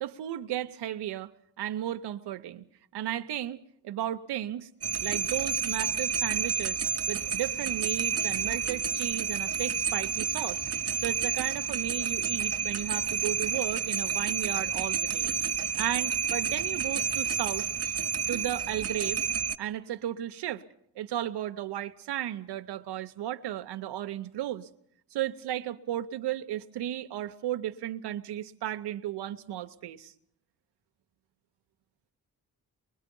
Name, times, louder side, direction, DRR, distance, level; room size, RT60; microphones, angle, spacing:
voice 1, 0.0-1.3 1.6-2.7 2.9-4.7 5.0-10.6 11.0-15.3 15.8-17.7 18.3-19.2 19.6-20.6 20.9-24.7 25.1-30.1, right 12 dB, 90° right, 0.8 m, -34 dB
sound 1, 4.8-19.6, right 7 dB, 35° right, 0.7 m, -30 dB
23.5 x 22.0 x 5.3 m
cardioid pair, 55°, 40 cm